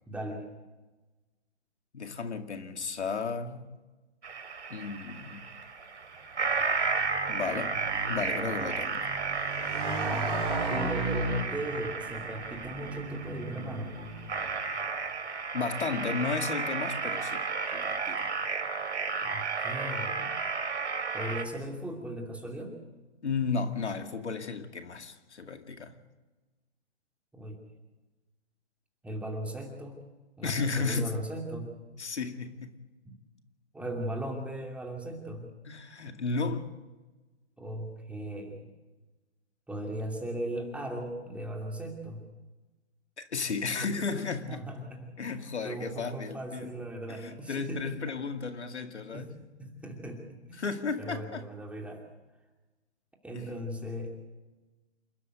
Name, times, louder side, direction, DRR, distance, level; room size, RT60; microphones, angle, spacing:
voice 1, 0.1-0.4 10.0-10.4 10.7-13.9 19.2-20.3 21.1-22.7 27.3-27.6 29.0-30.0 30.4-31.7 33.0-33.2 33.7-35.4 37.6-38.7 39.7-42.3 44.4-48.0 49.1-50.6 51.0-52.0 53.2-54.2, right 1 dB, 5° right, 2.7 m, -38 dB
voice 2, 1.9-3.7 4.7-5.5 7.3-7.8 8.1-9.1 15.5-18.3 23.2-25.9 30.4-31.1 32.0-32.8 35.7-36.7 43.2-44.6 45.2-46.7 47.1-49.3 50.6-51.5 53.3-53.5, left 4 dB, 85° left, 2.3 m, -34 dB
sound 1, 4.2-21.4, right 4 dB, 85° right, 2.5 m, -33 dB
Motorcycle, 6.5-14.6, right 2 dB, 35° right, 6.0 m, -36 dB
28.0 x 12.5 x 8.1 m
hypercardioid pair, 140°, 33 cm